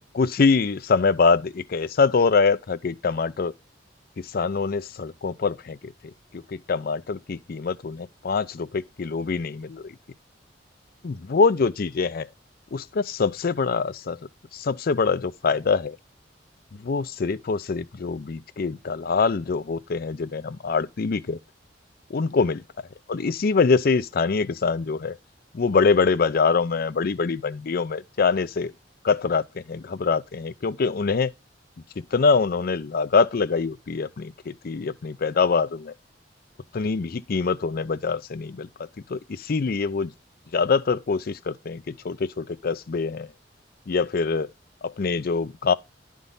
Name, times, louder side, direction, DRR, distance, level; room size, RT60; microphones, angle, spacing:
voice 1, 0.1-3.5 4.2-5.9 6.3-9.9 11.0-12.3 12.7-14.2 14.5-16.0 16.7-21.4 22.1-22.6 23.1-25.2 25.5-28.7 29.0-31.3 32.1-35.9 36.7-38.7 39.1-40.1 40.5-43.3 43.9-44.5 44.8-45.7, left 4 dB, 55° left, 0.5 m, -24 dB
11.0 x 3.7 x 3.8 m
head